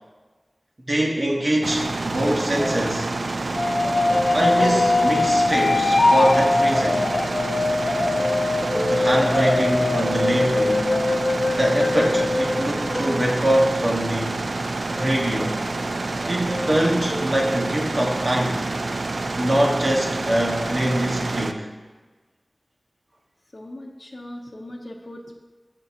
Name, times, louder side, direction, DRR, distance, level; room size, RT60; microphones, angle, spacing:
voice 1, 0.9-3.1 4.3-7.1 8.8-10.9 11.6-14.4 14.9-15.6 16.3-18.6 19.4-21.7, right 1 dB, 60° right, -2 dB, 1.5 m, -23 dB
sound 1, 1.6-21.5, right 2 dB, 85° right, 0.4 m, -28 dB
sound 2, 2.6-6.2 6.7-10.2 10.9-11.6 12.2-14.5 15.0-18.3 18.9-19.0, equal, 10° left, 0.5 m, -34 dB
sound 3, 3.6-13.5, left 2 dB, 85° left, 0.4 m, -22 dB
voice 2, 23.5-25.3, left 1 dB, 55° left, -1 dB, 0.7 m, -39 dB
14.5 x 5.3 x 2.9 m, 1.3 s
wide cardioid pair, 45°, 0 cm